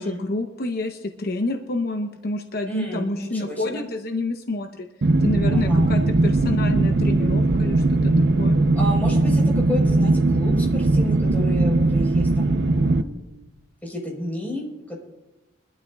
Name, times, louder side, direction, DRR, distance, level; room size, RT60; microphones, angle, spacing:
voice 1, 0.0-4.9 5.2-8.6, left 2 dB, 55° left, 4 dB, 0.8 m, -28 dB
voice 2, 2.7-3.9 5.5-5.9 8.8-13.3 13.8-15.0, left 1 dB, 10° left, -2 dB, 4.2 m, -32 dB
sound 1, 5.0-13.0, right 2 dB, 65° right, 0.6 m, -19 dB
23.5 x 12.0 x 2.3 m, 1.1 s
head